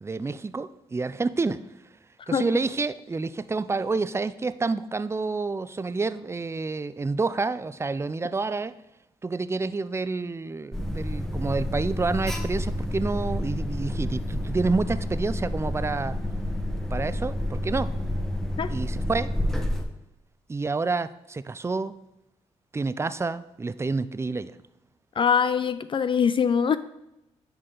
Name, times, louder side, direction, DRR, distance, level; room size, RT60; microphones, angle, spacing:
voice 1, 0.0-1.6 2.3-8.7 9.2-16.2 16.9-17.9 18.7-19.3 20.5-21.9 22.7-24.5, right 3 dB, 20° right, 14 dB, 0.4 m, -28 dB
Alarm, 10.7-19.8, left 1 dB, 5° left, 1.1 m, -29 dB
voice 2, 25.2-26.8, left 7 dB, 45° left, 13 dB, 0.4 m, -23 dB
9.7 x 4.4 x 3.8 m, 0.85 s
supercardioid pair, 60°, 12 cm